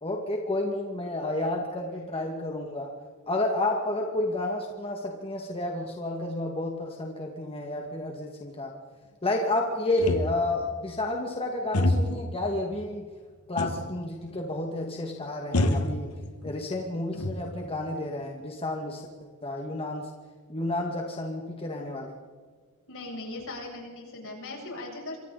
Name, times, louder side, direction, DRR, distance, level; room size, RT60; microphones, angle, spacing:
voice 1, 0.0-2.9 3.3-8.7 9.2-13.1 13.5-16.2 16.4-19.0 19.4-20.1 20.5-22.1, left 2 dB, 25° left, 1 dB, 2.2 m, -30 dB
sound 1, 10.0-10.6 11.7-12.3 13.6-14.0 14.3-14.4 15.5-16.6 17.0-17.8, left 1 dB, 85° left, 1.9 m, -27 dB
voice 2, 22.9-25.2, left 2 dB, 65° left, -1 dB, 8.0 m, -38 dB
28.0 x 24.0 x 4.2 m, 1.6 s
head